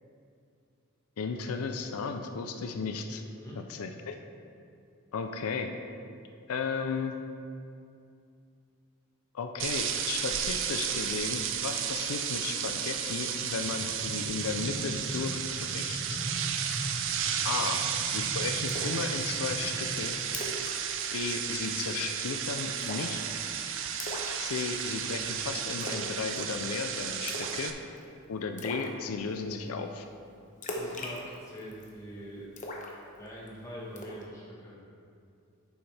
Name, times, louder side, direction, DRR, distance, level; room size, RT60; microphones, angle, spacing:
voice 1, 1.2-3.2 3.6-4.2 5.1-5.7 6.5-7.1 9.3-16.2 17.4-20.2 21.1-23.2 24.4-27.7 28.3-30.1, left 5 dB, 90° left, 6 dB, 0.5 m, -35 dB
voice 2, 3.2-3.6 30.7-32.5 33.2-34.8, equal, 15° left, -6 dB, 1.7 m, -44 dB
sound 1, 9.6-27.7, right 8 dB, 60° right, 0.5 m, -33 dB
sound 2, 13.6-20.0, right 1 dB, 25° right, 0.7 m, -40 dB
Splash splatter, 18.7-19.0 19.4-19.5 19.9-20.0 20.3-20.7 21.0-21.2 21.5-21.9 22.8-23.2 24.0-24.9 25.8-26.1 26.4-26.7 27.3-27.7 28.0-28.1 28.6-28.9 30.6-31.9 32.6-33.5 34.0-34.2, left 2 dB, 35° left, 0.9 m, -39 dB
9.3 x 7.0 x 3.3 m, 2.5 s
head